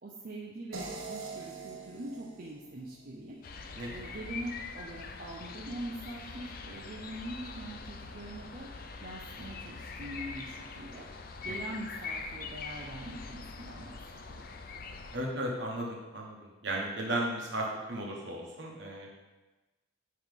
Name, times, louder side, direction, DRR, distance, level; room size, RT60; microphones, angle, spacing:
voice 1, 0.0-3.4 3.9-8.7 9.0-11.0 11.4-14.5, right 1 dB, 45° right, -3 dB, 0.6 m, -43 dB
sound 1, 0.7-3.8, right 3 dB, 85° right, 0.9 m, -44 dB
sound 2, 3.4-15.2, left 4 dB, 45° left, 0.4 m, -43 dB
voice 2, 15.1-16.4 16.6-19.2, right 1 dB, 60° right, -1 dB, 1.2 m, -35 dB
9.3 x 3.2 x 3.6 m, 1.1 s
head